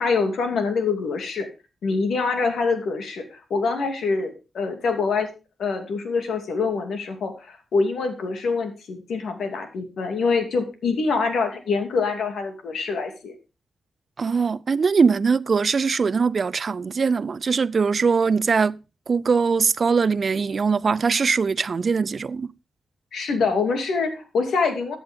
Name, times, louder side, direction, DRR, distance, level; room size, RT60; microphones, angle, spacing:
voice 1, 0.0-1.5 1.8-5.3 5.6-13.3 23.1-25.0, left 4 dB, 80° left, 2.7 m, -25 dB
voice 2, 14.2-22.5, right 5 dB, 50° right, 0.5 m, -21 dB
14.5 x 8.5 x 3.6 m
cardioid pair, 70°, 0 cm